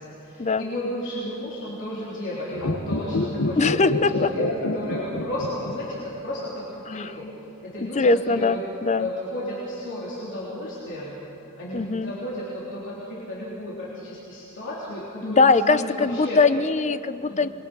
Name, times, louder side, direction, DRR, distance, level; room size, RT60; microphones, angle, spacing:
voice 1, 0.0-4.5 4.7-7.3 7.6-8.6 9.0-11.2 11.6-16.4 17.3-17.5, left 1 dB, 60° left, -7 dB, 3.7 m, -33 dB
sound 1, 2.5-6.0 6.2-6.3, left 2 dB, 80° left, 1.6 m, -26 dB
voice 2, 3.6-4.3 6.9-7.1 7.8-9.1 11.7-12.1 15.2-17.5, left 3 dB, 30° left, 13 dB, 0.6 m, -21 dB
26.5 x 22.0 x 5.5 m, 3.0 s
head